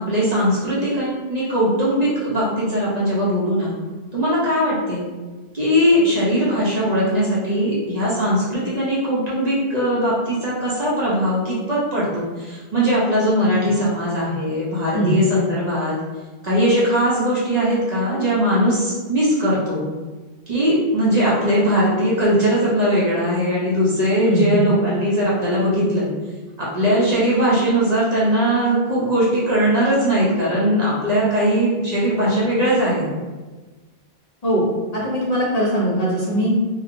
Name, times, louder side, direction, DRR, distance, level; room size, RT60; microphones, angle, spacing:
voice 1, 0.0-3.7 4.1-5.0 5.5-15.9 16.4-19.9 20.5-26.1 26.6-33.1, equal, 45° right, -7 dB, 0.6 m, -20 dB
voice 2, 24.2-24.7 34.4-34.7 34.9-36.5, equal, 45° left, -7 dB, 0.6 m, -20 dB
2.8 x 2.1 x 2.5 m, 1.3 s
omnidirectional pair, 1.1 m